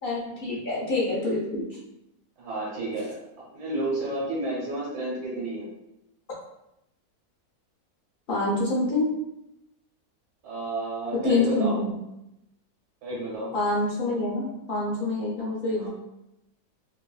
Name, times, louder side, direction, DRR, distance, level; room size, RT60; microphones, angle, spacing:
voice 1, 0.0-1.8 8.3-9.1 11.2-11.9 13.5-15.9, left 2 dB, 55° left, -5 dB, 0.6 m, -26 dB
voice 2, 2.4-3.1 3.5-5.7 10.4-11.8 13.0-13.5 15.8-15.9, right 2 dB, 85° right, -7 dB, 1.5 m, -31 dB
3.1 x 2.5 x 2.3 m, 0.87 s
omnidirectional pair, 1.6 m